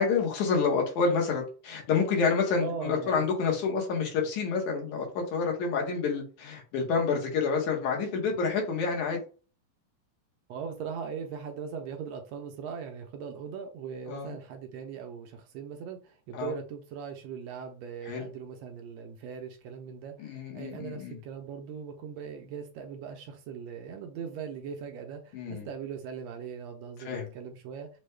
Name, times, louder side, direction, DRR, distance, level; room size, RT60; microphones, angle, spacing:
voice 1, 0.0-9.2 14.1-14.4 16.3-16.6 18.1-18.3 20.2-21.2 25.3-25.7 27.1-27.3, left 5 dB, 80° left, 2.6 m, -28 dB
voice 2, 2.6-3.3 10.5-27.9, right 6 dB, 75° right, 1.7 m, -40 dB
6.1 x 2.2 x 3.2 m
omnidirectional pair, 3.4 m